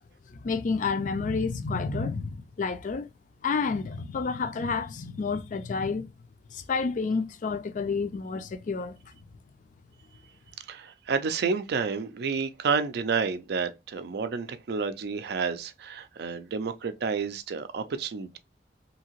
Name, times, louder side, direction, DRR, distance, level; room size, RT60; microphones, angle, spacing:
voice 1, 0.4-3.1 3.4-6.1 6.5-8.9, left 4 dB, 45° left, 0.3 m, -29 dB
voice 2, 10.7-18.4, right 5 dB, 60° right, 0.4 m, -30 dB
2.8 x 2.7 x 2.8 m
head